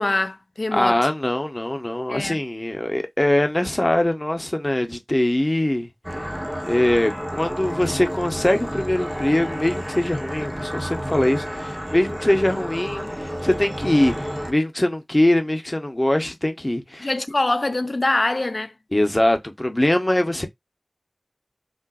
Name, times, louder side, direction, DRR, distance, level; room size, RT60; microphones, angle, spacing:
voice 1, 0.0-1.1 2.1-2.4 17.0-18.7, left 2 dB, 70° left, 0.3 m, -24 dB
voice 2, 0.7-5.9 6.6-14.2 14.5-17.1 18.9-20.5, left 1 dB, 35° left, 0.8 m, -22 dB
sound 1, 6.0-14.5, equal, ahead, 0.6 m, -30 dB
3.6 x 2.5 x 2.3 m
wide cardioid pair, 45°, 0 cm